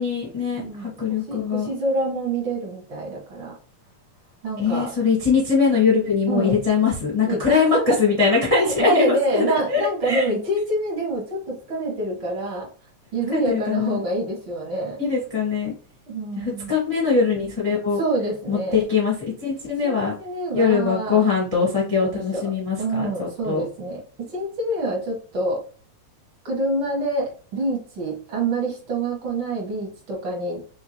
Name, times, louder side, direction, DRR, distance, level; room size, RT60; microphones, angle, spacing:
voice 1, 0.0-1.7 4.6-10.2 13.3-14.0 15.0-15.7 16.4-18.0 18.5-19.1 19.4-20.1 20.5-23.6, left 5 dB, 25° left, -4 dB, 0.7 m, -22 dB
voice 2, 0.6-0.9 1.3-3.5 4.4-4.9 6.3-6.6 7.3-7.8 8.6-12.7 13.1-15.0 16.1-16.8 18.0-18.8 19.8-21.2 22.0-22.4 22.8-25.6 26.5-30.6, right 2 dB, 50° right, -3 dB, 2.0 m, -26 dB
4.7 x 3.6 x 3.0 m, 0.40 s
omnidirectional pair, 3.3 m